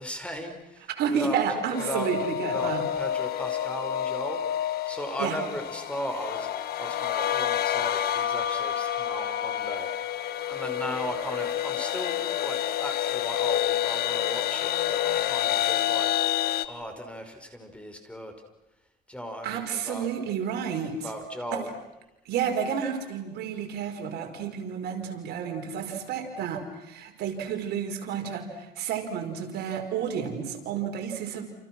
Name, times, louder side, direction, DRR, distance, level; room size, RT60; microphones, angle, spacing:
voice 1, 0.0-2.1 2.4-4.4 4.9-6.5 6.8-9.9 10.5-16.1 16.6-18.3 19.1-20.1 20.9-21.7, equal, 5° left, 6 dB, 5.4 m, -37 dB
voice 2, 0.9-2.8 5.2-5.4 19.4-21.1 21.5-21.6 22.2-31.5, right 7 dB, 75° right, 4 dB, 5.2 m, -31 dB
sound 1, 1.7-16.7, left 11 dB, 65° left, 1.6 m, -28 dB
29.5 x 29.5 x 6.2 m, 0.95 s
cardioid pair, 110°, 17 cm